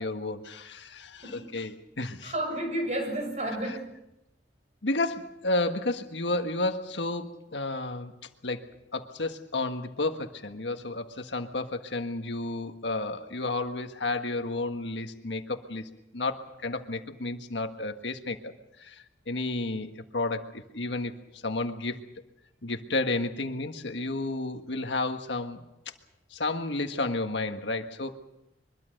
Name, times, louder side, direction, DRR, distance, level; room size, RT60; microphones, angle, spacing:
voice 1, 0.0-2.3 3.6-3.8 4.8-8.1 8.4-8.7 8.9-18.5 18.8-22.0 22.6-25.6 26.3-28.2, left 2 dB, 75° left, 6 dB, 1.6 m, -32 dB
voice 2, 1.2-1.5 2.2-3.9, right 1 dB, 40° right, 4 dB, 6.7 m, -31 dB
24.0 x 22.0 x 6.6 m, 0.88 s
head